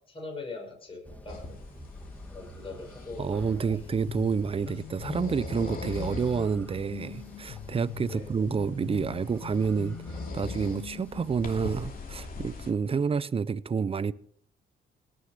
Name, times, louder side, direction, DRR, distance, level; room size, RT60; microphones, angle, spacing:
voice 1, 0.1-1.6 2.3-3.9 8.0-8.3, left 3 dB, 25° left, 6.2 m, -42 dB
sound 1, 1.0-12.9, left 1 dB, 10° left, 1.8 m, -48 dB
sound 2, 1.3-12.7, left 3 dB, 45° left, 2.6 m, -42 dB
voice 2, 3.2-10.0 10.3-14.1, right 5 dB, 30° right, 0.6 m, -29 dB
sound 3, 3.7-11.3, left 10 dB, 90° left, 0.9 m, -43 dB
18.0 x 6.4 x 6.8 m
cardioid pair, 90°, 20 cm